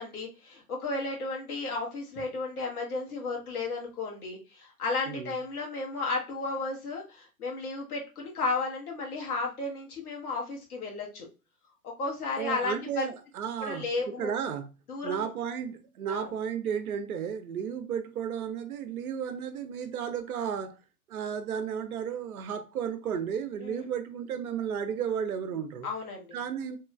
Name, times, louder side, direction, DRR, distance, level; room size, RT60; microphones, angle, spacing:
voice 1, 0.0-11.3 11.8-13.1 13.6-14.3 14.9-15.3 16.1-16.3 23.6-23.8 25.8-26.4, left 3 dB, 75° left, 1.3 m, -33 dB
voice 2, 5.1-5.4 12.4-14.7 15.0-20.8 21.1-25.9 26.3-26.8, right 8 dB, 70° right, 0.7 m, -33 dB
3.0 x 3.0 x 2.3 m
figure-of-eight pair, 95°, 45 cm